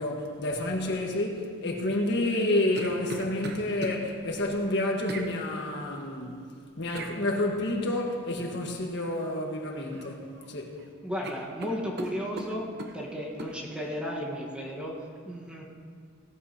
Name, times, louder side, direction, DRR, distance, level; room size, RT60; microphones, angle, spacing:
voice 1, 0.0-6.4 6.8-10.7, left 1 dB, 60° left, 1.5 m, -29 dB
sound 1, 2.2-4.0 5.1-5.3 7.0-7.2 9.2-9.4 9.8-10.5 10.8-10.9 11.2-13.0 13.4-13.6, right 2 dB, 55° right, 1.0 m, -40 dB
voice 2, 11.0-12.7 12.9-15.6, equal, 5° right, 1.4 m, -34 dB
17.5 x 13.0 x 2.9 m
head